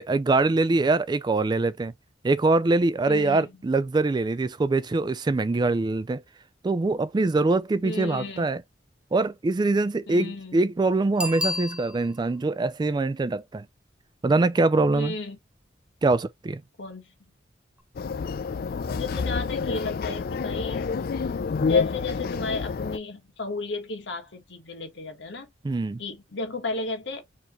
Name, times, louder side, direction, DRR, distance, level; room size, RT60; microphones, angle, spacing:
voice 1, 0.0-1.9 2.2-6.2 6.6-8.6 9.1-13.7 14.2-15.1 16.0-16.6 25.6-26.0, right 3 dB, 25° right, 0.3 m, -23 dB
voice 2, 3.1-3.5 7.8-8.6 10.1-10.6 14.9-15.4 16.8-17.1 18.6-20.9 21.7-25.5 26.0-27.2, left 3 dB, 75° left, 1.5 m, -34 dB
Bicycle bell, 11.2-12.3 17.8-17.9, left 2 dB, 5° right, 0.7 m, -31 dB
sound 1, 18.0-23.0, left 5 dB, 55° left, 0.4 m, -28 dB
4.6 x 2.9 x 3.1 m
head